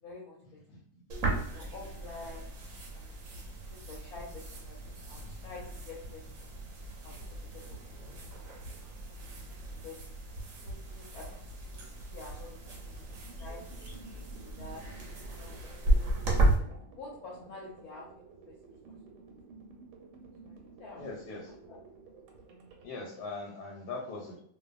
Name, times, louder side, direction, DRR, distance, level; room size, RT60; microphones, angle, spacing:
voice 1, 0.0-0.6 1.5-2.6 2.9-3.2 3.7-6.4 7.0-7.8 8.1-8.4 9.0-9.2 9.8-10.0 10.6-14.8 15.3-16.0 16.7-18.6 20.4-21.0 21.7-21.8, left 3 dB, 70° left, -3 dB, 1.0 m, -49 dB
sound 1, 1.1-16.5, right 1 dB, 65° right, 0.9 m, -35 dB
sound 2, 12.7-22.9, right 4 dB, 85° right, 1.2 m, -53 dB
voice 2, 21.0-21.5 22.8-24.4, left 3 dB, 85° left, -3 dB, 1.2 m, -40 dB
2.5 x 2.4 x 2.3 m, 0.67 s
omnidirectional pair, 1.8 m